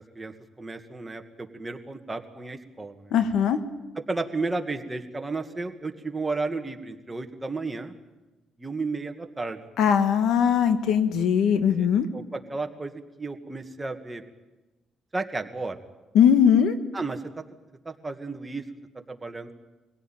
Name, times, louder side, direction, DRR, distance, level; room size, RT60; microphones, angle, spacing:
voice 1, 0.2-3.1 4.1-7.9 8.6-9.6 11.7-11.9 12.1-12.9 13.2-14.2 15.1-15.8 16.9-17.2 17.9-18.6 19.1-19.5, right 3 dB, 20° right, 5 dB, 2.0 m, -33 dB
voice 2, 3.1-3.6 9.8-12.1 16.1-16.7, left 8 dB, 80° left, 10 dB, 1.5 m, -20 dB
24.0 x 17.0 x 9.2 m, 1.1 s
cardioid pair, 90°, 0 cm